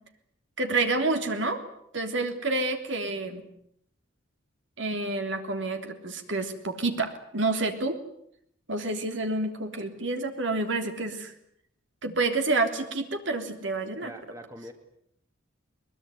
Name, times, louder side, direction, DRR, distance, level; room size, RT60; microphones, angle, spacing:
voice 1, 0.6-1.6 1.9-3.5 4.8-8.0 8.7-11.3 12.0-14.1, right 3 dB, 65° right, 6 dB, 3.4 m, -28 dB
voice 2, 14.0-14.7, equal, 15° right, 6 dB, 2.1 m, -43 dB
22.5 x 22.0 x 9.6 m, 0.72 s
head